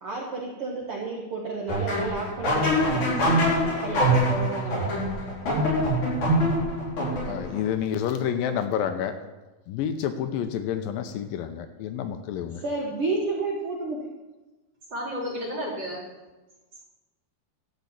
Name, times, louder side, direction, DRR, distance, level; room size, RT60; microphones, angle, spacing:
voice 1, 0.0-3.4 3.6-4.9 12.6-14.0, right 3 dB, 55° right, -2 dB, 1.6 m, -31 dB
sound 1, 1.7-7.6, equal, 55° left, 6.1 m, -24 dB
voice 2, 7.2-9.2 9.7-12.6, left 9 dB, 80° left, 8 dB, 2.4 m, -29 dB
voice 3, 14.9-16.0, equal, 35° right, -3 dB, 3.1 m, -32 dB
12.5 x 5.2 x 8.4 m, 1.1 s
omnidirectional pair, 4.2 m